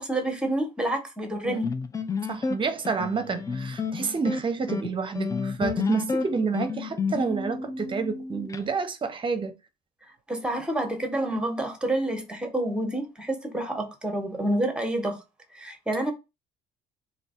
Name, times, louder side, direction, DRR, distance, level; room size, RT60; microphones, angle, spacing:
voice 1, 0.0-1.7 10.3-15.2 15.5-16.1, right 1 dB, 5° right, 1.0 m, -28 dB
sound 1, 1.6-8.6, left 5 dB, 20° left, 0.4 m, -30 dB
voice 2, 2.3-9.5, right 5 dB, 30° right, 0.7 m, -29 dB
3.2 x 2.7 x 4.2 m
cardioid pair, 110°, 17 cm